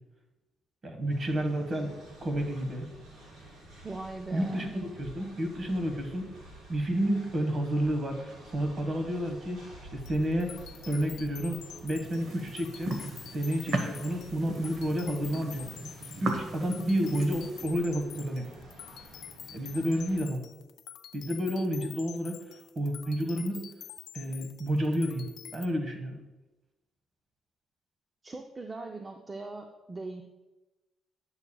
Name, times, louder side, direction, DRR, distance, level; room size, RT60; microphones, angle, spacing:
voice 1, 0.8-2.0 2.2-2.9 4.3-6.3 6.7-10.6 10.8-13.0 13.3-15.7 16.2-18.5 19.5-20.4 21.1-22.4 22.7-23.7 24.1-26.2, equal, 45° right, 5 dB, 1.4 m, -30 dB
Train, 1.1-20.2, right 1 dB, 75° right, 2.8 m, -50 dB
voice 2, 3.8-4.8 28.2-30.2, right 3 dB, 25° right, 4 dB, 0.5 m, -40 dB
sound 1, 10.0-25.7, left 10 dB, 75° left, 0.4 m, -48 dB
sound 2, 12.0-17.6, right 2 dB, 60° right, 1.1 m, -38 dB
10.5 x 7.2 x 2.3 m, 1.1 s
cardioid pair, 90°, 0 cm